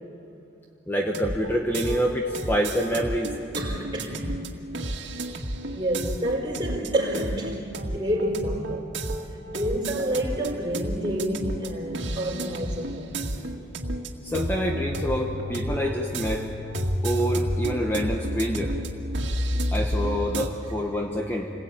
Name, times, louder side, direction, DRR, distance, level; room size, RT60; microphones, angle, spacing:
voice 1, 0.9-3.3 14.2-16.5 17.0-18.7 19.7-21.5, equal, 10° left, 1.4 m, -26 dB
sound 1, 1.0-20.5, equal, 80° right, 2.0 m, -31 dB
voice 2, 3.5-4.4 5.7-8.9 9.3-13.3, right 1 dB, 25° right, 4.9 m, -29 dB
29.0 x 21.0 x 8.9 m
head